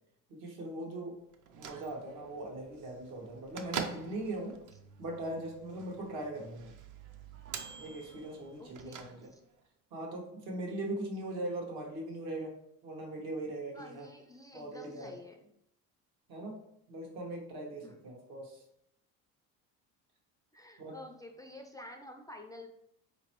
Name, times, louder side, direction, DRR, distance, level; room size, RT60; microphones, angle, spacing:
voice 1, 0.3-1.2 1.5-4.6 5.0-6.7 7.8-9.3 9.9-12.6 12.8-14.1 14.5-15.2 16.3-16.6 16.9-18.6 20.8-21.0, right 1 dB, 70° right, 0 dB, 1.3 m, -40 dB
Bell / Microwave oven, 1.3-9.6, right 6 dB, 50° right, 0.6 m, -45 dB
voice 2, 8.6-9.4 13.7-15.4 17.8-17.9 20.5-22.7, left 1 dB, 10° left, 3 dB, 0.3 m, -50 dB
4.3 x 2.9 x 3.0 m, 0.74 s
supercardioid pair, 85°, 38 cm